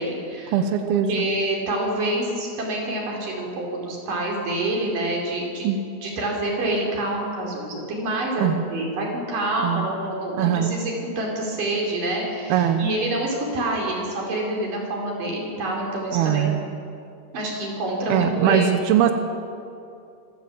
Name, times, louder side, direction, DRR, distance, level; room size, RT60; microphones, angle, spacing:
voice 1, 0.0-0.6 0.8-5.7 6.0-16.6 17.3-19.0, right 1 dB, 45° right, -2 dB, 6.0 m, -27 dB
voice 2, 0.5-1.1 5.6-5.8 8.4-8.6 9.6-9.9 10.4-10.8 12.5-12.9 16.1-16.6 18.1-19.1, right 10 dB, 80° right, 7 dB, 2.3 m, -21 dB
26.0 x 16.0 x 8.7 m, 2.6 s
omnidirectional pair, 5.8 m